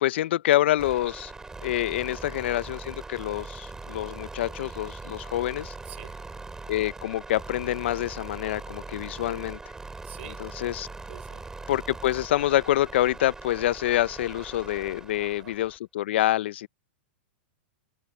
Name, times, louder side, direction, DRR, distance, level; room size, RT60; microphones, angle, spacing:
voice 1, 0.0-1.3 1.6-5.7 6.7-9.6 10.2-10.9 11.7-16.7, left 14 dB, 70° left, 0.7 m, -26 dB
sound 1, 0.8-15.8, right 3 dB, 10° right, 6.1 m, -41 dB
voice 2, 2.0-2.4 5.8-6.2 10.0-10.4 11.1-11.4 15.2-15.6, right 12 dB, 75° right, 4.7 m, -46 dB
hypercardioid pair, 135°, 6 cm